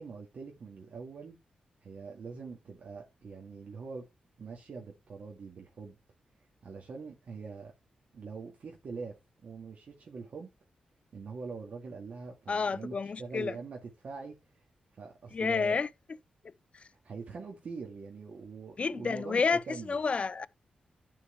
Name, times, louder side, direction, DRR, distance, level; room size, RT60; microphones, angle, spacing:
voice 1, 0.0-1.4 1.8-4.0 4.4-6.0 6.6-7.7 8.1-9.2 9.4-10.5 11.1-14.4 15.0-15.8 17.0-20.0, right 4 dB, 65° right, 2.2 m, -43 dB
voice 2, 12.5-13.5 15.3-15.9 18.8-20.5, left 5 dB, 45° left, 0.5 m, -30 dB
11.0 x 4.6 x 4.6 m
cardioid pair, 60°, 3 cm